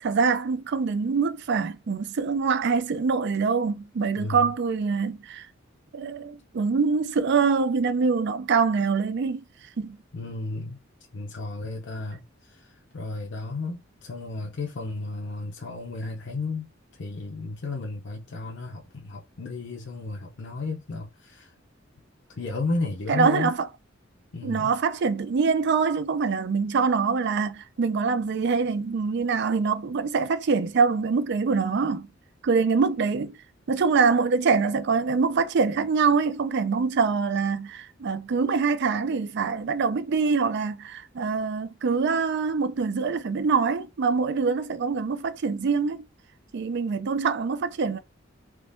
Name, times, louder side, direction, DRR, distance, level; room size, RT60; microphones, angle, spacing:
voice 1, 0.0-5.5 5.9-9.4 9.8-10.0 23.1-23.6 24.4-32.1 32.4-33.4 33.7-46.1 46.5-48.0, right 5 dB, 60° right, 0.4 m, -24 dB
voice 2, 4.2-4.5 10.1-10.8 11.1-16.7 17.0-21.5 22.3-23.5 24.3-24.7, left 3 dB, 60° left, 0.6 m, -33 dB
3.6 x 2.9 x 2.6 m
head